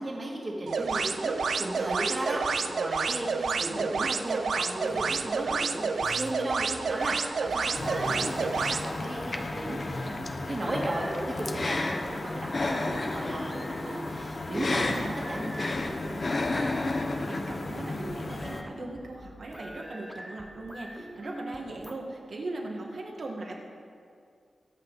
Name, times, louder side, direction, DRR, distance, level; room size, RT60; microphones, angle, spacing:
voice 1, 0.0-10.1 10.5-15.9, right 1 dB, 30° right, -2 dB, 2.2 m, -35 dB
sound 1, 0.7-8.8, right 5 dB, 80° right, 0.6 m, -29 dB
voice 2, 3.2-3.9 8.0-8.3 10.0-10.3 16.0-16.6 17.0-23.6, right 2 dB, 55° right, 0 dB, 1.8 m, -40 dB
sound 2, 4.8-21.9, equal, ahead, 0.9 m, -44 dB
sound 3, 7.8-18.6, left 2 dB, 40° left, 0.9 m, -32 dB
22.5 x 8.5 x 4.1 m, 2.4 s
wide cardioid pair, 175°, 0 cm